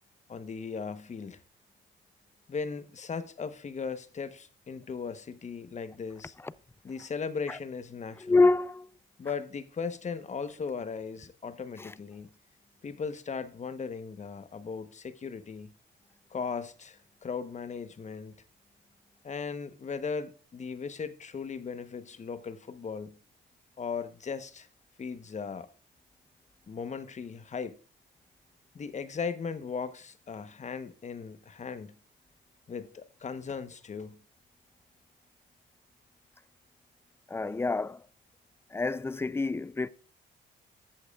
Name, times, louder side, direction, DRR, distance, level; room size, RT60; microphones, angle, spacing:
voice 1, 0.3-1.4 2.5-6.3 6.8-8.5 9.2-12.3 12.8-15.7 16.3-18.4 19.2-23.2 23.8-24.7 25.0-25.7 26.7-27.8 28.7-32.0 32.7-34.2, left 5 dB, 35° left, 1.0 m, -37 dB
voice 2, 8.2-8.9 11.8-11.9 37.3-38.0 38.7-39.9, left 3 dB, 10° left, 0.4 m, -27 dB
13.5 x 8.3 x 2.4 m
cardioid pair, 90°, 20 cm